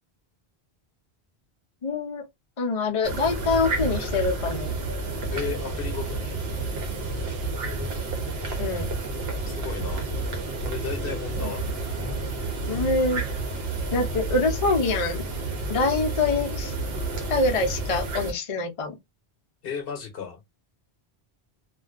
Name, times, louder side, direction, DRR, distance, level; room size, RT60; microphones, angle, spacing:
voice 1, 1.8-2.2 2.6-4.7 8.6-8.9 11.4-11.5 12.7-13.2 13.9-15.2 15.7-16.7 17.3-18.9, left 3 dB, 40° left, 0.5 m, -25 dB
sound 1, 3.0-18.3, right 3 dB, 70° right, 0.9 m, -30 dB
voice 2, 5.3-6.4 9.5-10.0 10.6-11.6 19.6-20.4, left 6 dB, 60° left, 0.9 m, -34 dB
2.4 x 2.3 x 2.4 m
omnidirectional pair, 1.1 m